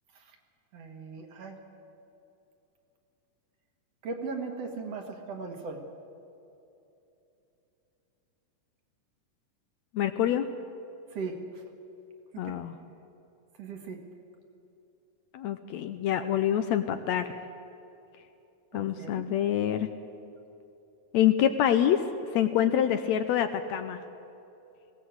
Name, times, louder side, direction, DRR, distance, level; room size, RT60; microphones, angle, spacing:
voice 1, 0.7-1.6 4.0-5.8 11.1-11.6 12.4-12.6 13.6-14.0 18.7-19.3, right 4 dB, 55° right, 3 dB, 2.4 m, -38 dB
voice 2, 9.9-10.5 12.4-12.8 15.3-17.3 18.7-19.9 21.1-22.0 22.3-24.0, left 10 dB, 75° left, 9 dB, 1.8 m, -26 dB
19.5 x 17.5 x 7.9 m, 2.9 s
omnidirectional pair, 3.6 m